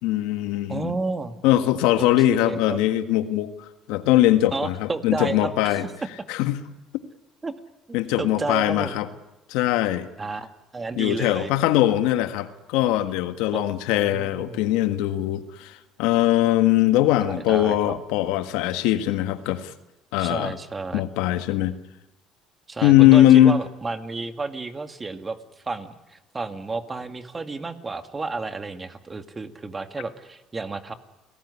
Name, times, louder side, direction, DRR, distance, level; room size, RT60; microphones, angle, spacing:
voice 1, 0.0-0.9 1.4-5.8 6.3-6.6 7.9-9.1 9.5-10.1 11.0-19.7 20.1-20.5 20.9-21.7 22.8-23.6, left 13 dB, 85° left, 10 dB, 1.6 m, -21 dB
voice 2, 0.7-1.4 2.0-2.8 4.5-5.9 7.4-7.5 7.9-9.0 10.2-11.5 13.5-14.7 17.3-17.8 20.2-21.0 22.7-25.4 25.6-30.9, right 3 dB, 25° right, 8 dB, 2.2 m, -32 dB
29.5 x 18.5 x 9.9 m, 0.98 s
cardioid pair, 100°, 0 cm